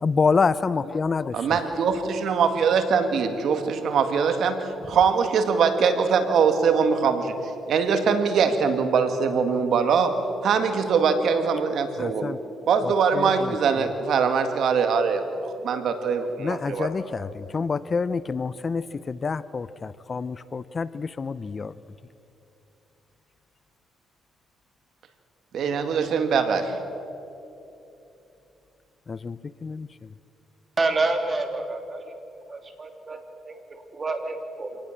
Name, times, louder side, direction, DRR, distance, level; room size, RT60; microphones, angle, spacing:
voice 1, 0.0-1.6 12.0-12.4 12.8-13.9 16.4-21.7 29.1-30.1, left 5 dB, 35° left, 17 dB, 0.6 m, -27 dB
voice 2, 1.3-7.3 7.7-10.2 10.4-12.4 12.7-16.9 25.5-26.7, right 6 dB, 70° right, 7 dB, 2.1 m, -22 dB
voice 3, 30.8-32.1 32.5-34.8, right 3 dB, 35° right, 5 dB, 3.1 m, -28 dB
26.5 x 19.0 x 7.5 m, 2.9 s
cardioid pair, 90°, 0 cm